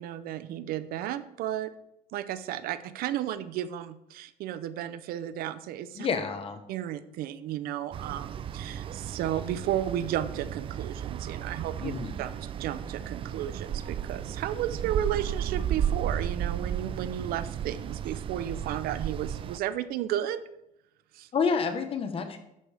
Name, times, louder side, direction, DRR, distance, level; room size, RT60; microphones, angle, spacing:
voice 1, 0.0-1.7 2.1-6.1 6.7-11.9 12.2-20.5 21.1-21.3, right 11 dB, 70° right, 14 dB, 0.6 m, -33 dB
voice 2, 5.9-6.6 11.8-12.2 21.3-22.4, left 5 dB, 35° left, 8 dB, 1.1 m, -29 dB
sound 1, 7.9-19.6, right 9 dB, 35° right, 0.4 m, -34 dB
11.0 x 8.5 x 3.4 m, 0.84 s
cardioid pair, 140°, 16 cm